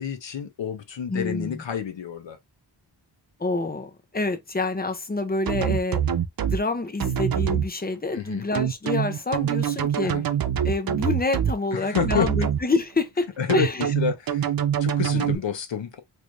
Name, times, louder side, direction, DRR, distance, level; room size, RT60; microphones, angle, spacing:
voice 1, 0.0-2.4 8.1-8.5 10.0-10.2 11.7-12.5 13.4-14.5 14.8-16.0, left 8 dB, 65° left, 0.8 m, -29 dB
voice 2, 1.1-1.6 3.4-6.0 6.4-10.1 10.6-13.3 13.5-13.9 15.1-15.4, left 3 dB, 20° left, 0.5 m, -27 dB
sound 1, 5.5-6.6 7.0-7.7 8.5-11.5 11.9-12.6 13.5-15.3, right 9 dB, 50° right, 0.5 m, -24 dB
3.2 x 3.1 x 2.5 m
wide cardioid pair, 125°, 49 cm